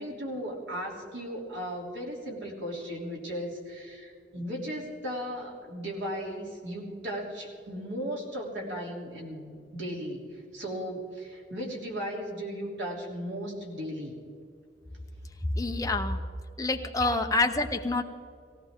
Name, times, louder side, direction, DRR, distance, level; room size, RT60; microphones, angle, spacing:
voice 1, 0.0-14.1 16.8-17.2, equal, 90° right, -1 dB, 3.2 m, -36 dB
voice 2, 15.6-16.2 16.6-18.0, left 3 dB, 20° left, 5 dB, 0.8 m, -27 dB
18.0 x 16.5 x 3.7 m, 2.3 s
head